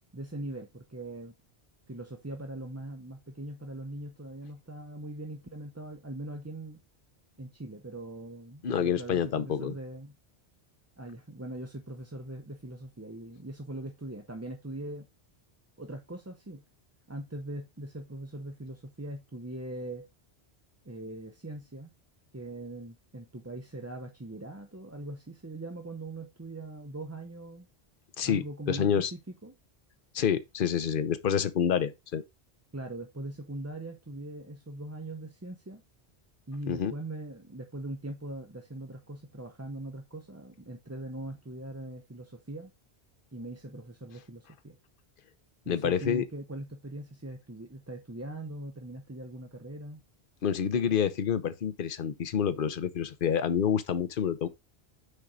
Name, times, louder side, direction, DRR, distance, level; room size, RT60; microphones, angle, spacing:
voice 1, 0.1-1.3 1.9-6.8 7.4-10.1 11.0-15.1 15.8-16.6 17.1-20.0 20.8-21.9 22.3-27.7 28.2-29.5 32.7-35.8 36.5-42.7 43.3-44.8 45.6-50.0, right 1 dB, 15° right, 0.7 m, -41 dB
voice 2, 8.6-9.7 28.2-29.1 30.1-32.2 36.7-36.9 45.7-46.2 50.4-54.5, left 8 dB, 55° left, 1.0 m, -28 dB
6.7 x 4.6 x 3.8 m
omnidirectional pair, 1.1 m